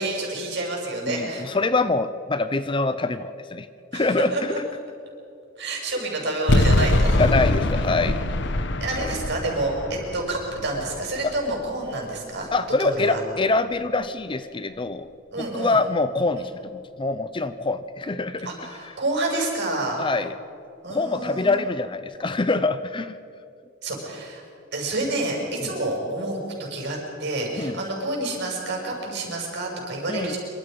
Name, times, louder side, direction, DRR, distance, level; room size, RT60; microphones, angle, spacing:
voice 1, 0.0-1.4 3.9-4.1 4.3-4.6 5.6-7.2 8.8-12.5 12.8-13.2 15.3-15.8 18.4-20.0 20.8-21.6 23.8-24.4 24.7-30.4, right 2 dB, 55° right, 0 dB, 6.6 m, -28 dB
voice 2, 1.0-3.7 3.9-4.6 7.2-8.2 9.0-9.2 11.2-11.3 12.5-15.1 15.5-18.5 20.0-20.3 20.9-23.2 27.6-27.8 30.1-30.3, left 3 dB, 25° left, 12 dB, 0.6 m, -25 dB
sound 1, 6.5-11.7, left 1 dB, 60° left, 1.2 m, -23 dB
26.5 x 25.0 x 5.3 m, 2.6 s
head